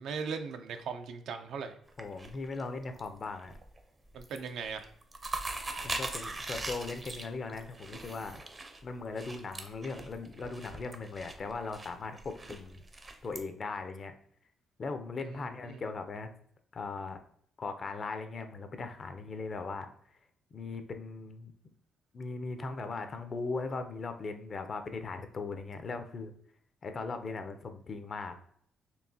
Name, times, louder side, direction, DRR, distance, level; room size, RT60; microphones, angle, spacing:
voice 1, 0.0-1.8 4.1-4.9 15.2-15.8, right 5 dB, 75° right, 7 dB, 0.4 m, -39 dB
sound 1, 1.9-3.1 3.4-3.8 4.1-4.5 4.8-13.4, right 2 dB, 25° right, 0.6 m, -41 dB
voice 2, 2.0-3.5 5.8-8.4 8.8-12.8 13.2-14.1 14.8-16.3 16.7-17.2 17.6-19.9 20.5-21.5 22.1-26.3 26.8-28.4, left 3 dB, 45° left, 8 dB, 0.5 m, -39 dB
4.5 x 2.9 x 2.7 m, 0.63 s
cardioid pair, 90°, 0 cm